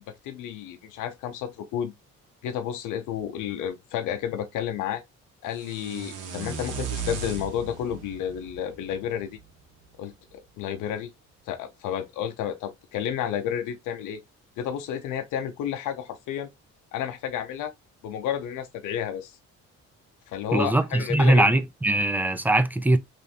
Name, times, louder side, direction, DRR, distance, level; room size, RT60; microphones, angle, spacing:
voice 1, 0.2-1.9 2.4-5.0 5.4-9.4 10.0-11.1 11.5-14.2 14.6-16.5 16.9-17.7 18.0-19.4 20.3-21.5, left 9 dB, 90° left, 0.6 m, -31 dB
sound 1, 5.5-9.6, right 5 dB, 90° right, 0.9 m, -36 dB
voice 2, 20.5-23.0, right 1 dB, 5° right, 0.3 m, -21 dB
3.3 x 2.6 x 2.6 m
cardioid pair, 90°, 30 cm